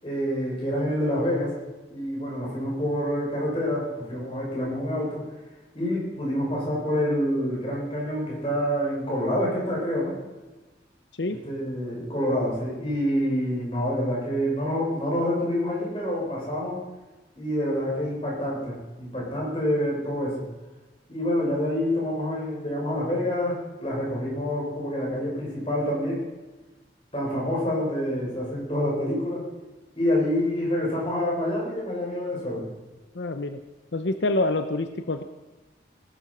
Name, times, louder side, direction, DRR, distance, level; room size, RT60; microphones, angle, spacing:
voice 1, 0.0-1.5 1.9-5.2 5.7-10.2 11.3-16.8 17.4-20.4 21.1-26.2 27.1-29.4 30.0-32.6, equal, 30° left, -3 dB, 6.9 m, -27 dB
voice 2, 33.1-33.6 33.9-35.2, left 2 dB, 85° left, 9 dB, 0.8 m, -26 dB
19.5 x 11.5 x 5.7 m, 1.1 s
head